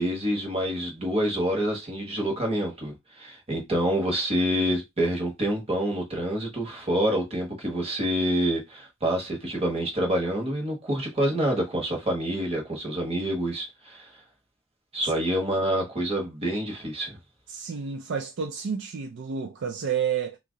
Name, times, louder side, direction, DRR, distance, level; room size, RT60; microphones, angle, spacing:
voice 1, 0.0-14.1 14.9-17.1, right 1 dB, 30° right, 1.2 m, -27 dB
voice 2, 17.5-20.4, right 7 dB, 60° right, 0.4 m, -30 dB
2.8 x 2.5 x 3.7 m
head